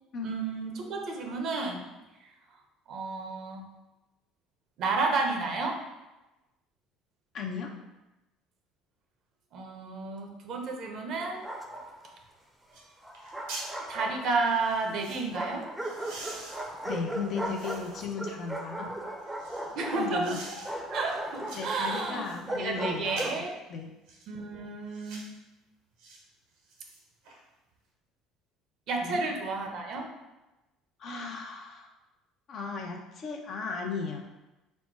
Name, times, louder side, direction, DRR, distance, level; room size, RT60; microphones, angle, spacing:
voice 1, 0.2-1.9 2.9-3.6 4.8-5.8 9.5-11.5 13.9-15.7 19.7-20.6 20.9-23.5 24.3-25.3 28.9-30.1, right 3 dB, 60° right, 2 dB, 0.8 m, -31 dB
voice 2, 7.3-7.7 16.8-18.9 19.9-20.4 21.5-23.4 23.7-23.9 29.0-29.3 31.0-31.9 32.5-34.3, left 5 dB, 55° left, 1 dB, 0.7 m, -36 dB
Bark, 11.2-12.1 13.0-14.6 15.3-23.5, right 1 dB, 10° right, 0.6 m, -37 dB
sound 1, 12.2-12.3 12.7-12.9 13.1-13.7 14.5-15.3 15.8-18.1 18.6-19.7 20.2-20.7 21.1-22.4 23.1-23.5 24.1-24.3 24.9-25.3 26.0-26.2 26.5-27.4 27.7-27.8, right 2 dB, 80° right, 1.1 m, -46 dB
4.3 x 2.1 x 4.5 m, 1.0 s
supercardioid pair, 80°, 0 cm